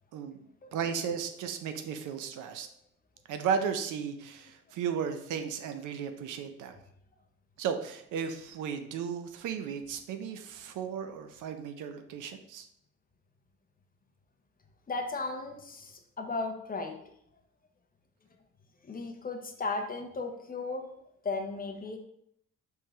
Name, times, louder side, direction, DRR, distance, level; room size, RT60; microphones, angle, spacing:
voice 1, 0.1-0.4 0.7-2.7 3.3-6.8 7.6-12.7, right 7 dB, 85° right, 8 dB, 0.6 m, -35 dB
voice 2, 14.9-17.1 18.8-20.9 21.2-22.0, left 3 dB, 30° left, 5 dB, 0.7 m, -35 dB
4.5 x 3.6 x 3.1 m, 0.73 s
cardioid pair, 90°, 30 cm